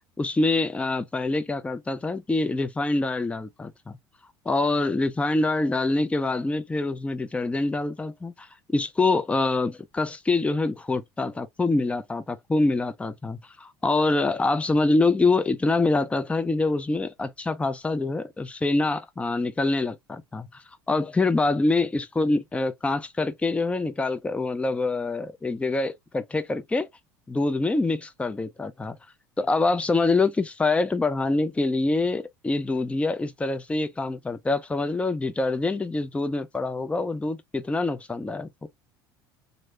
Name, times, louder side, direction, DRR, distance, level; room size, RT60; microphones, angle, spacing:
voice 1, 0.2-4.0 4.5-26.9 27.3-29.0 29.4-38.7, left 3 dB, 10° left, 0.5 m, -25 dB
3.0 x 2.6 x 2.7 m
hypercardioid pair, 70°, 11 cm